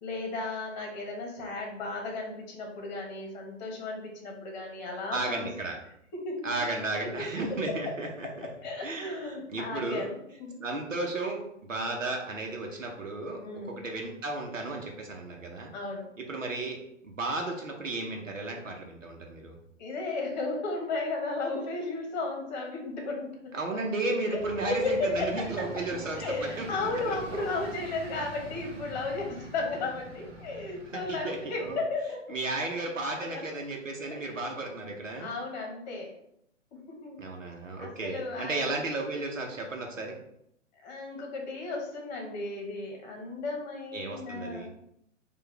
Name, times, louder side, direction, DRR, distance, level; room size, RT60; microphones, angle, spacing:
voice 1, 0.0-5.5 6.1-6.5 7.5-7.6 8.6-10.1 10.4-10.6 13.4-13.8 15.7-16.1 19.8-23.5 24.3-24.4 24.7-25.5 26.2-32.2 33.2-33.3 34.1-34.6 35.2-36.1 36.7-37.2 37.8-38.7 40.8-44.7, left 3 dB, 35° left, 1 dB, 1.2 m, -34 dB
voice 2, 5.1-5.8 6.4-8.5 8.8-10.1 10.6-15.7 16.2-19.6 23.5-26.7 27.0-27.6 30.9-31.8 32.3-35.3 37.2-40.2 43.9-44.7, right 2 dB, 85° right, 1 dB, 0.9 m, -34 dB
sound 1, 24.4-31.7, right 2 dB, 50° right, 0.9 m, -44 dB
4.6 x 2.5 x 3.3 m, 0.75 s
figure-of-eight pair, 120°, 38 cm